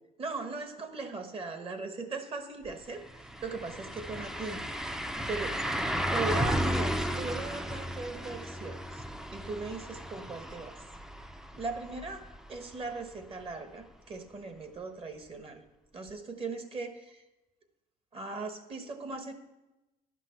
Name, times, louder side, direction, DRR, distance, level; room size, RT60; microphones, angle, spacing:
voice 1, 0.2-4.6 5.3-5.6 6.1-9.0 9.3-10.8 11.6-15.6 15.9-17.2 18.1-19.3, right 3 dB, 35° right, 7 dB, 1.2 m, -39 dB
sound 1, 2.6-2.7 3.1-12.8 13.2-13.3 16.1-16.2, equal, 5° right, 0.5 m, -34 dB
11.0 x 6.0 x 5.8 m, 1.0 s
cardioid pair, 110°, 17 cm